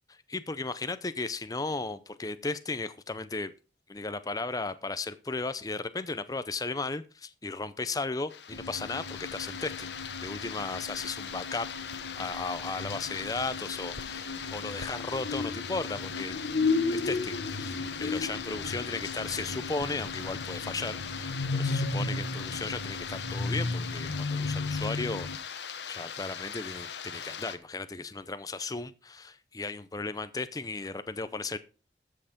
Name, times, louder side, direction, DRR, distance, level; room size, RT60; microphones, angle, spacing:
voice 1, 0.3-3.5 3.9-9.9 10.2-11.7 12.2-16.4 16.9-25.5 25.9-31.6, left 3 dB, 20° left, 0.6 m, -35 dB
sound 1, 8.3-27.6, left 7 dB, 85° left, 1.2 m, -40 dB
sound 2, 8.5-25.4, left 3 dB, 60° left, 1.0 m, -34 dB
13.5 x 6.6 x 5.1 m
head